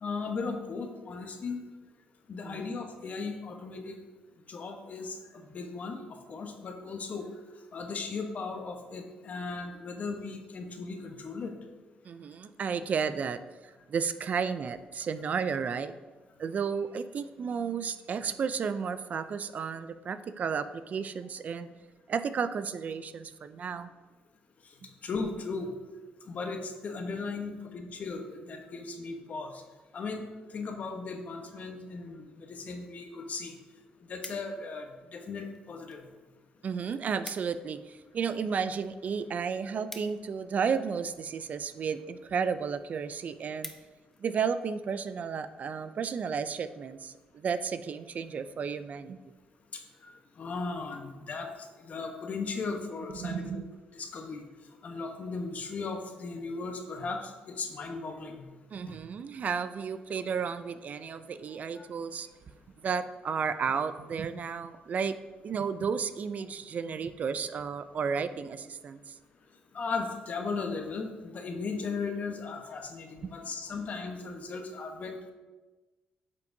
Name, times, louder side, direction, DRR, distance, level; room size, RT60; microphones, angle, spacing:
voice 1, 0.0-1.6 2.3-4.0 4.5-6.0 6.3-7.3 7.7-11.6 25.0-25.7 26.3-29.6 29.9-30.2 30.5-33.5 34.1-34.9 35.1-36.0 50.0-50.1 50.4-51.5 51.8-53.6 53.9-54.4 54.8-58.5 61.8-61.9 69.7-75.3, left 4 dB, 50° left, 4 dB, 1.1 m, -37 dB
voice 2, 12.0-15.9 16.4-21.7 22.1-23.9 36.6-43.7 44.2-49.2 53.1-53.6 58.7-62.3 62.8-65.2 65.4-69.2 73.2-73.3, right 6 dB, 50° right, 12 dB, 0.4 m, -33 dB
sound 1, 33.8-34.8 35.5-36.0 36.3-36.5 36.7-36.8 37.0-37.7 38.0-40.9 41.6-41.9 42.4-42.5 42.9-43.0 43.2-44.2 44.7-44.9, left 1 dB, 10° left, 0.8 m, -48 dB
8.9 x 5.7 x 2.7 m, 1.2 s
cardioid pair, 75°, 3 cm